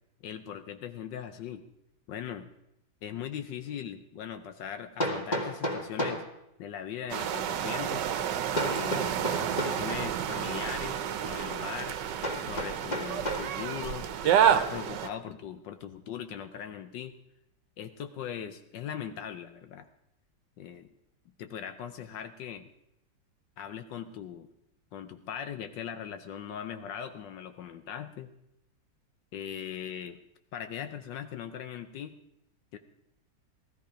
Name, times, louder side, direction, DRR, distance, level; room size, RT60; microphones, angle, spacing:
voice 1, 0.2-1.6 2.1-2.5 3.0-6.2 6.6-8.1 8.6-12.0 12.4-17.1 17.8-19.9 20.6-20.9 21.4-22.7 23.6-24.5 24.9-28.3 29.3-30.2 30.5-32.2 32.7-32.8, left 9 dB, 75° left, 9 dB, 1.4 m, -40 dB
Hammer, 5.0-6.3 8.6-9.9 12.2-13.5, equal, 25° left, 1.8 m, -32 dB
sound 1, 7.1-15.1, right 9 dB, 70° right, 1.4 m, -29 dB
16.5 x 13.5 x 5.0 m, 0.82 s
omnidirectional pair, 2.0 m